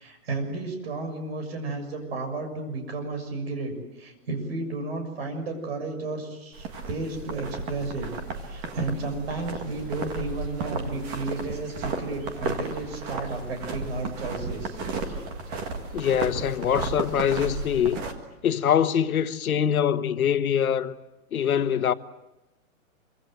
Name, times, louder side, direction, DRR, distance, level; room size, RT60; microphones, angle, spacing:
voice 1, 0.0-15.6, right 3 dB, 45° right, 6.8 m, -33 dB
sound 1, 6.5-18.1, right 3 dB, 15° right, 1.7 m, -34 dB
voice 2, 15.9-18.0 18.4-20.9 21.3-21.9, left 9 dB, 80° left, 1.4 m, -23 dB
26.0 x 25.0 x 7.9 m
hypercardioid pair, 175°, 42 cm